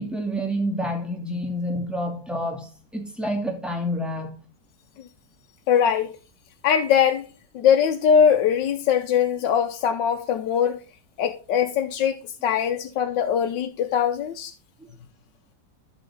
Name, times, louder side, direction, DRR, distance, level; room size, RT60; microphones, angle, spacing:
voice 1, 0.0-4.4, equal, ahead, 2.4 m, -28 dB
voice 2, 5.7-6.1 6.6-7.2 7.5-10.8 11.2-12.2 12.4-14.5, left 8 dB, 75° left, 1.4 m, -21 dB
10.5 x 7.4 x 3.7 m
omnidirectional pair, 2.0 m